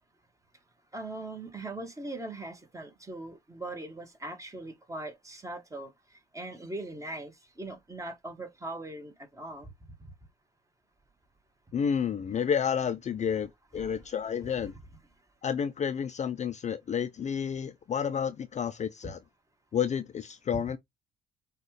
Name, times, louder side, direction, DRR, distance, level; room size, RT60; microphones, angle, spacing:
voice 1, 0.9-9.7 10.0-10.1 13.7-14.0 19.0-19.1 20.5-20.6, right 2 dB, 15° right, 1.3 m, -40 dB
voice 2, 11.7-14.7 15.4-19.2 19.7-20.8, left 7 dB, 35° left, 0.5 m, -30 dB
6.4 x 2.4 x 3.2 m
cardioid pair, 85°, 20 cm